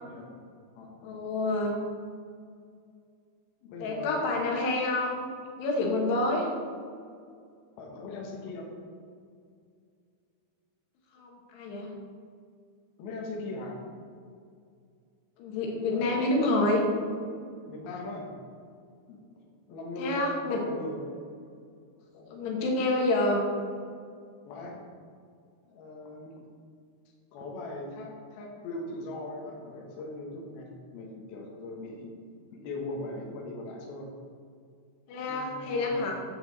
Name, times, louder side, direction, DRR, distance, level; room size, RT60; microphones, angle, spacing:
voice 1, 1.0-1.8 3.8-6.5 11.2-11.9 15.4-16.8 20.0-20.6 22.2-23.5 35.1-36.1, left 2 dB, 85° left, -1 dB, 3.5 m, -28 dB
voice 2, 3.6-4.3 7.8-8.7 13.0-13.8 15.9-16.5 17.7-18.3 19.1-21.0 24.4-24.8 25.7-26.5 27.3-32.1 32.5-34.1 35.2-36.1, left 2 dB, 70° left, -1 dB, 3.2 m, -40 dB
11.0 x 7.8 x 4.1 m, 2.2 s
omnidirectional pair, 4.7 m